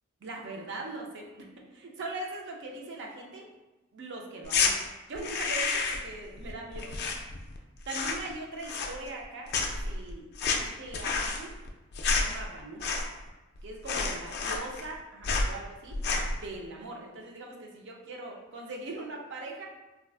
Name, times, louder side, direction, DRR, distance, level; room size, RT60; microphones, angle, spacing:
voice 1, 0.2-3.5 3.9-4.8 5.1-7.0 7.9-10.3 10.5-11.6 12.1-12.9 13.6-16.0 16.3-19.7, right 2 dB, 55° right, 0 dB, 0.5 m, -41 dB
sound 1, 4.4-4.7 5.1-6.1 6.4-7.6 7.8-8.3 8.6-9.2 9.5-13.3 13.6-13.7 13.9-15.0 15.2-15.5 15.9-16.4, left 4 dB, 50° left, 0.3 m, -29 dB
3.5 x 2.3 x 2.3 m, 1.1 s
head